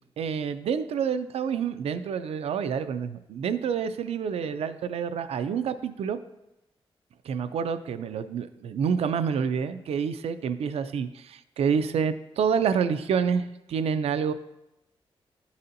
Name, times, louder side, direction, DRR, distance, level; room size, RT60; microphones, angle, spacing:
voice 1, 0.2-6.2 7.3-14.3, right 7 dB, 90° right, 11 dB, 0.4 m, -28 dB
11.0 x 4.1 x 2.6 m, 0.90 s
wide cardioid pair, 145°, 10 cm